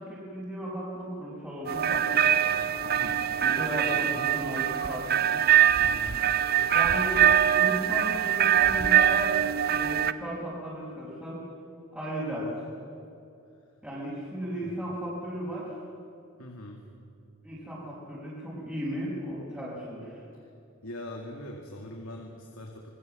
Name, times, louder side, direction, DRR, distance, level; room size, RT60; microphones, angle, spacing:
voice 1, 0.0-2.7 3.4-5.4 6.7-7.3 7.6-9.4 9.7-11.4 11.9-12.5 13.8-15.7 17.4-20.2, equal, 5° right, -9 dB, 5.4 m, -35 dB
sound 1, 1.7-10.1, right 10 dB, 45° right, 0.7 m, -23 dB
voice 2, 3.0-3.3 5.8-6.2 14.6-14.7 16.4-16.8 20.8-22.9, left 1 dB, 85° left, 1 dB, 2.2 m, -42 dB
27.0 x 21.0 x 7.6 m, 2.6 s
head